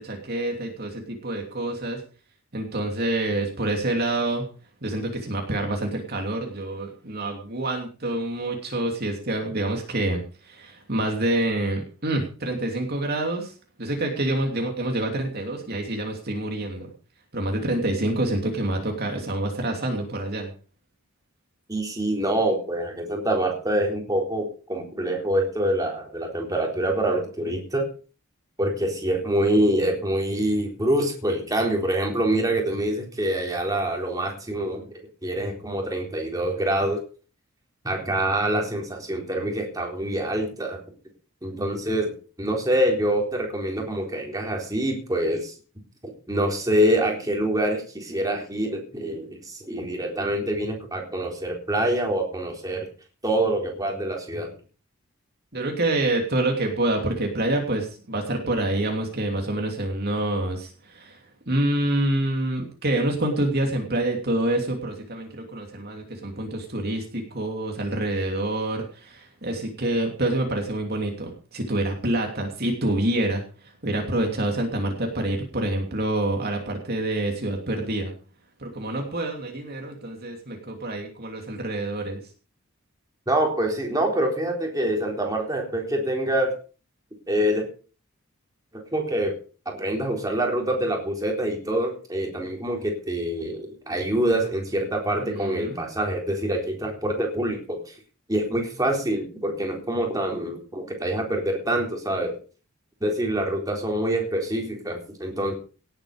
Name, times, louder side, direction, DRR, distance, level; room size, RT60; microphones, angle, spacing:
voice 1, 0.0-2.0 2.5-4.4 4.8-13.5 13.8-16.9 17.3-20.5 55.5-78.1 78.6-82.2 95.2-95.8, right 1 dB, 45° right, 2 dB, 2.9 m, -27 dB
voice 2, 21.7-27.9 28.6-37.0 37.8-40.8 41.4-45.5 46.3-52.9 53.2-54.5 83.3-86.6 87.3-87.7 88.7-89.4 89.7-98.0 98.3-102.4 103.0-105.5, right 1 dB, 15° right, 1 dB, 3.9 m, -25 dB
18.0 x 8.8 x 5.1 m, 0.38 s
head